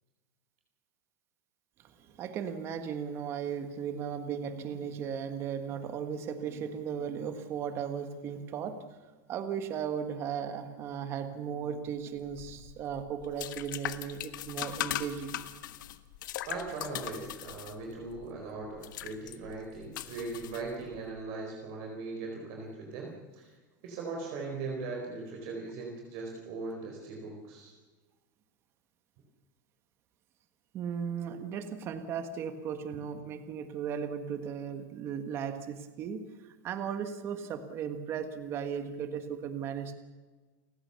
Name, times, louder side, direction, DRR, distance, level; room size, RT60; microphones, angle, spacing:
voice 1, 2.0-9.0 9.3-15.4 30.7-36.2 36.6-39.9, right 7 dB, 25° right, 8 dB, 1.5 m, -36 dB
sound 1, 12.2-21.1, left 13 dB, 70° left, 1.5 m, -40 dB
voice 2, 16.5-23.5 23.8-27.7, right 3 dB, 40° right, 1 dB, 4.5 m, -39 dB
29.5 x 16.0 x 7.0 m, 1.3 s
supercardioid pair, 180°, 11 cm